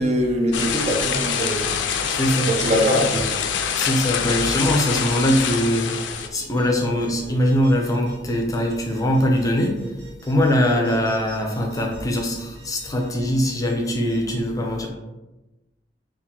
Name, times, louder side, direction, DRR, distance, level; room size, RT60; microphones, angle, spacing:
voice 1, 0.0-1.8 2.4-3.3, equal, 35° right, 0.4 m, -22 dB
sound 1, 0.5-6.3, left 7 dB, 75° left, 0.3 m, -25 dB
sound 2, 0.6-14.2, right 2 dB, 75° right, 0.9 m, -46 dB
voice 2, 2.1-2.5 2.9-3.0 3.7-5.9 6.3-9.8 10.2-14.9, equal, 20° left, 0.5 m, -22 dB
3.7 x 2.5 x 2.8 m
head